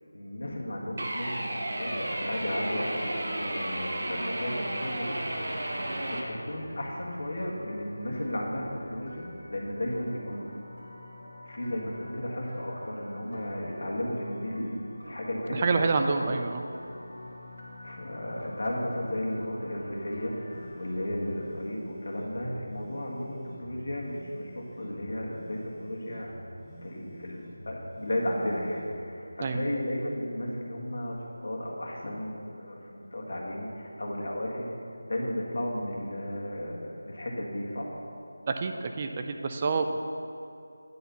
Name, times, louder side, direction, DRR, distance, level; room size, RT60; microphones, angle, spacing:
voice 1, 0.1-5.1 6.1-10.5 11.4-16.0 17.8-26.3 26.8-34.7 35.0-37.9, left 1 dB, 60° left, -3 dB, 1.7 m, -34 dB
sound 1, 1.0-6.2, right 1 dB, 55° right, 1.0 m, -33 dB
sound 2, 5.0-21.5, left 1 dB, 90° left, 1.8 m, -47 dB
voice 2, 15.5-16.7 29.4-29.6 38.5-40.0, right 4 dB, 25° right, 5 dB, 0.4 m, -27 dB
sound 3, 20.5-29.1, equal, ahead, 0.9 m, -48 dB
9.4 x 4.3 x 6.8 m, 2.7 s
figure-of-eight pair, 170°, 0 cm